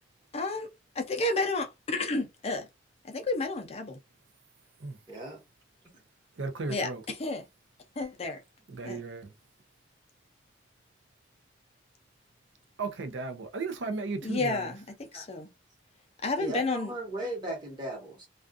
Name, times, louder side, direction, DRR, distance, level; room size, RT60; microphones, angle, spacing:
voice 1, 0.3-0.7 1.0-2.7 3.1-4.0 6.7-6.9 7.2-7.4 8.0-8.4 8.8-9.0 14.2-14.8 15.1-15.5 16.2-16.9, left 2 dB, 35° left, 0.5 m, -31 dB
voice 2, 5.1-5.4 15.1-15.3 16.4-18.3, right 1 dB, 25° right, 1.2 m, -37 dB
voice 3, 6.4-7.0 8.7-9.3 12.8-14.7, right 3 dB, 75° right, 0.6 m, -35 dB
2.4 x 2.4 x 2.4 m
head